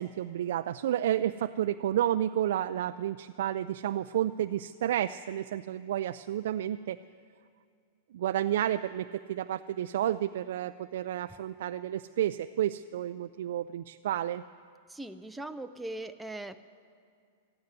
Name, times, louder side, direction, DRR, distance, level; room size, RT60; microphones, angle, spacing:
voice 1, 0.0-7.0 8.1-14.4, right 11 dB, 70° right, 10 dB, 0.3 m, -31 dB
voice 2, 14.9-16.6, right 1 dB, 5° right, 7 dB, 0.5 m, -40 dB
13.5 x 9.7 x 9.3 m, 2.3 s
hypercardioid pair, 130°, 0 cm